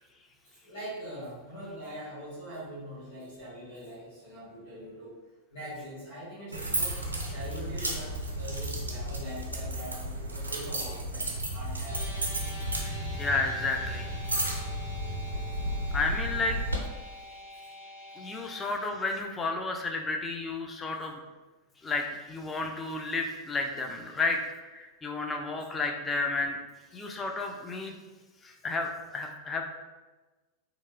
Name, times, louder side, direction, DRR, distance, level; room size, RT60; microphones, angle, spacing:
voice 1, 0.6-5.1 5.5-7.0 7.2-12.0 27.0-27.1, equal, 55° left, -9 dB, 1.4 m, -42 dB
sound 1, 6.5-16.8, right 1 dB, 80° right, 0.4 m, -33 dB
sound 2, 11.9-18.7, left 1 dB, 80° left, 0.6 m, -45 dB
voice 2, 12.4-14.5 15.9-16.6 16.9-21.2 21.8-26.6 26.9-28.0 28.4-29.6, left 3 dB, 15° left, 2 dB, 0.3 m, -32 dB
2.8 x 2.2 x 2.5 m, 1.2 s
figure-of-eight pair, 90°, 0 cm